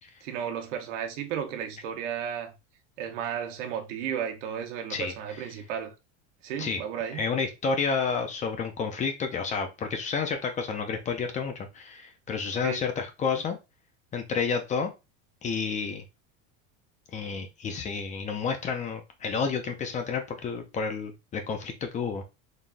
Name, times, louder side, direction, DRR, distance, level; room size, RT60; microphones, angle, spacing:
voice 1, 0.2-2.5 3.0-5.9 6.4-7.2 12.6-12.8, right 8 dB, 90° right, 1.1 m, -33 dB
voice 2, 4.9-5.5 6.6-6.8 7.1-13.6 14.1-14.9 15.4-16.0 17.1-22.2, left 5 dB, 20° left, 0.5 m, -30 dB
4.0 x 3.5 x 2.5 m
supercardioid pair, 155°, 36 cm